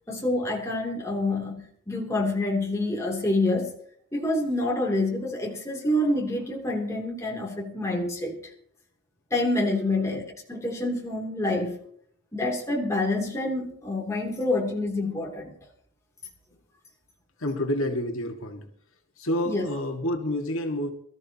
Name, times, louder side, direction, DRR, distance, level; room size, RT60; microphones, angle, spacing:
voice 1, 0.1-3.7 4.1-8.4 9.3-10.2 10.5-11.8 12.3-15.5 19.4-19.7, left 2 dB, 15° left, -1 dB, 2.8 m, -27 dB
voice 2, 17.4-18.6 19.2-20.9, left 1 dB, 75° left, 3 dB, 1.8 m, -29 dB
23.0 x 13.5 x 2.9 m, 0.64 s
head